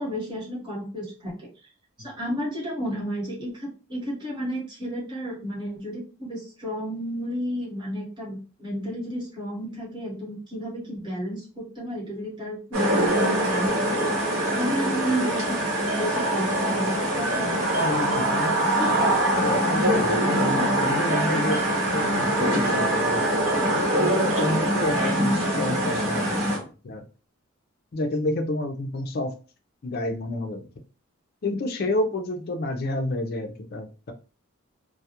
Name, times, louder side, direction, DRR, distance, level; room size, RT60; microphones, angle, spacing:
voice 1, 0.0-1.5 2.0-14.1 14.5-15.6 15.9-17.7 18.7-19.2 20.5-20.8 21.5-21.6, equal, 20° right, -6 dB, 1.1 m, -32 dB
sound 1, 12.7-26.6, right 1 dB, 70° right, 0.9 m, -23 dB
voice 2, 17.8-18.9 19.4-21.6 21.9-23.2 24.0-27.0 27.9-29.3 29.8-30.7 31.4-34.1, left 1 dB, 45° left, 6 dB, 0.4 m, -29 dB
2.3 x 2.0 x 2.8 m, 0.34 s
head